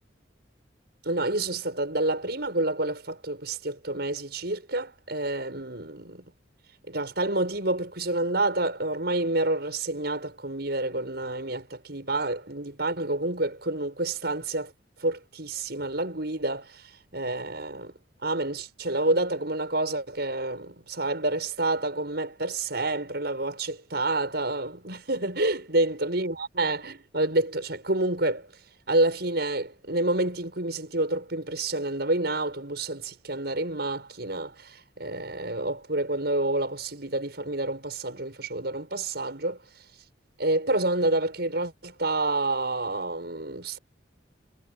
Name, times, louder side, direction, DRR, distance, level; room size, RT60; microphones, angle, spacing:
voice 1, 1.0-6.3 6.9-14.7 15.0-17.9 18.2-28.5 28.9-39.6 40.4-43.8, right 2 dB, 60° right, 7.8 m, -28 dB
head